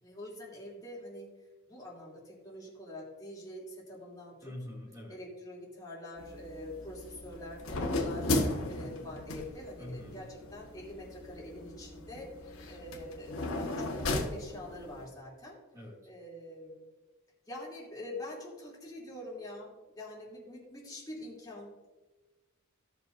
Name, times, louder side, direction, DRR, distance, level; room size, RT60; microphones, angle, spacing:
voice 1, 0.0-4.5 5.1-15.6 16.0-16.8 17.5-21.9, left 1 dB, 20° left, -5 dB, 2.9 m, -45 dB
voice 2, 4.4-5.2 9.8-10.2 15.7-16.1, left 1 dB, 15° right, -3 dB, 2.4 m, -44 dB
sound 1, 6.2-15.1, left 2 dB, 75° left, 1.4 m, -36 dB
17.0 x 6.0 x 2.6 m, 1.2 s
head